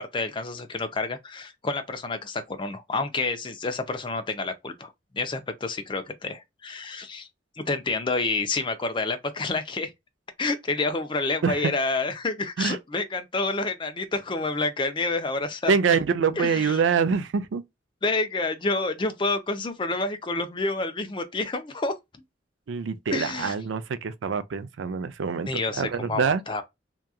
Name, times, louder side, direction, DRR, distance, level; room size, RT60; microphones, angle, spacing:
voice 1, 0.0-7.3 7.6-9.9 10.4-16.0 16.4-16.8 18.0-21.9 23.1-23.5 25.5-26.6, left 3 dB, 25° left, 0.5 m, -29 dB
voice 2, 15.7-17.6 22.7-26.4, right 5 dB, 85° right, 0.4 m, -25 dB
2.8 x 2.3 x 2.2 m
head